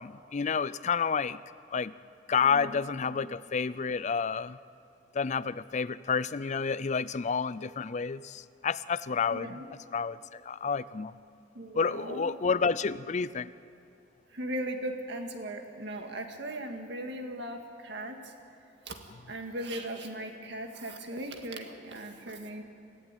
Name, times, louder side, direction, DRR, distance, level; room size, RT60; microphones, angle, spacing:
voice 1, 0.0-1.4 1.7-1.9 2.3-4.6 5.1-9.6 9.9-11.2 11.7-13.5, left 5 dB, 35° left, 17 dB, 0.4 m, -30 dB
voice 2, 2.4-3.3 9.3-9.7 11.5-12.3 14.3-18.3 18.9-19.0 19.3-22.6, right 1 dB, 60° right, 4 dB, 2.0 m, -38 dB
23.5 x 15.0 x 9.1 m, 2.5 s
head